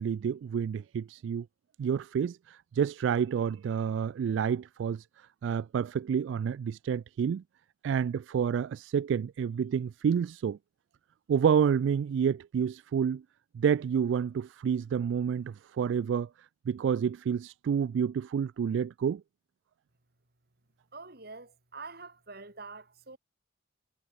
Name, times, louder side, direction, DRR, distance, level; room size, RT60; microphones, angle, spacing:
voice 1, 0.0-1.5 1.8-5.0 5.4-7.4 7.8-10.6 11.3-13.2 13.5-16.3 16.7-19.2, right 7 dB, 85° right, 0.3 m, -29 dB
voice 2, 20.9-23.2, right 3 dB, 55° right, 3.8 m, -46 dB
head